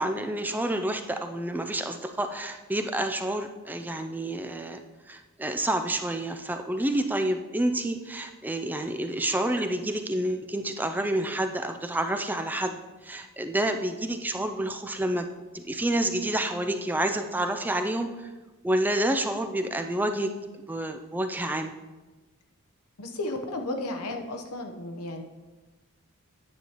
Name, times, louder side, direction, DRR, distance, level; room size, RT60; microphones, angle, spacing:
voice 1, 0.0-4.8 5.1-12.8 13.0-15.3 15.5-18.3 18.6-20.3 20.7-21.7, right 1 dB, 10° right, 7 dB, 0.3 m, -29 dB
voice 2, 23.0-25.2, left 2 dB, 90° left, 4 dB, 0.9 m, -33 dB
9.5 x 7.1 x 3.0 m, 1.2 s
head